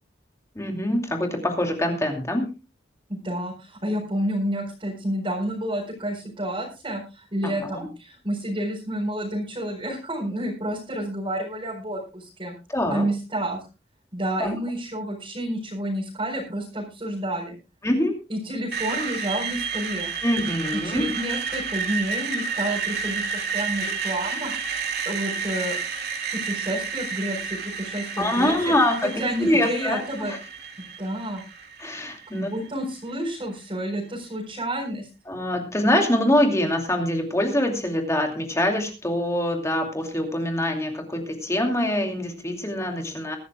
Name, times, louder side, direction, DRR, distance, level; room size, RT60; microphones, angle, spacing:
voice 1, 0.5-2.5 7.4-7.9 12.7-13.1 14.4-14.6 17.8-18.1 20.2-21.1 28.2-29.1 29.4-30.4 31.8-32.5 35.3-43.4, left 1 dB, 15° left, 3 dB, 2.6 m, -24 dB
voice 2, 3.1-12.5 12.9-13.6 14.1-17.6 18.3-20.1 20.7-24.5 25.0-25.8 26.3-28.5 29.0-30.3 31.0-31.4 32.3-35.1, right 1 dB, 30° right, -4 dB, 4.5 m, -30 dB
Screech, 18.7-32.7, right 5 dB, 65° right, 2.6 m, -31 dB
22.5 x 12.5 x 2.3 m, 0.29 s
head